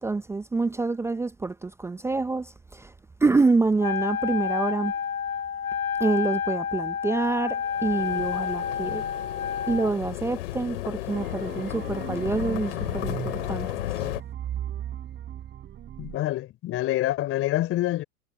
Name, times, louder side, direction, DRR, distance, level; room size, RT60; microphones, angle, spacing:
voice 1, 0.0-2.9 3.2-4.9 6.0-9.1 9.7-13.7, right 3 dB, 5° right, 0.8 m, -26 dB
Wind instrument woodwind instrument, 3.8-10.0, left 7 dB, 80° left, 1.0 m, -29 dB
sound 1, 7.6-14.2, left 16 dB, 55° left, 2.7 m, -33 dB
sound 2, 11.1-16.2, right 11 dB, 25° right, 4.4 m, -37 dB
voice 2, 16.0-18.0, left 15 dB, 30° left, 3.6 m, -26 dB
figure-of-eight pair, 105°, 42 cm